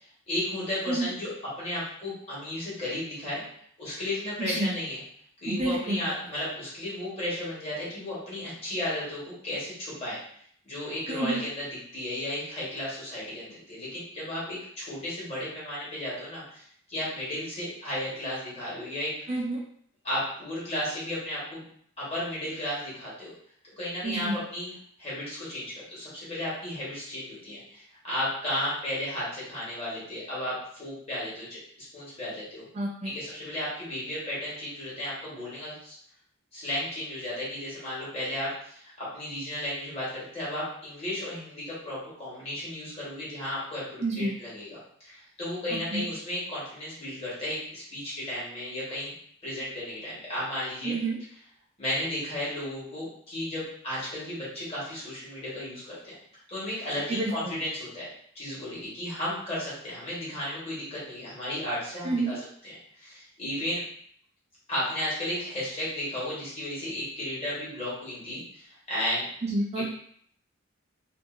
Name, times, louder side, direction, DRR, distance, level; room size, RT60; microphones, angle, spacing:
voice 1, 0.3-3.4 3.8-5.0 5.4-10.2 10.6-19.1 20.0-21.6 22.0-23.3 23.8-24.7 25.0-32.6 33.0-35.9 36.5-49.1 49.4-50.9 51.8-56.1 56.5-58.1 58.3-62.4 62.6-63.8 64.7-69.3, left 1 dB, 30° left, -8 dB, 1.4 m, -34 dB
voice 2, 4.4-4.7 5.5-6.0 11.1-11.4 19.3-19.6 24.0-24.4 32.7-33.1 44.0-44.3 45.9-46.0 50.8-51.2 57.1-57.3 62.0-62.4 69.4-69.8, right 2 dB, 35° right, -2 dB, 0.4 m, -28 dB
2.7 x 2.5 x 2.5 m, 0.64 s
head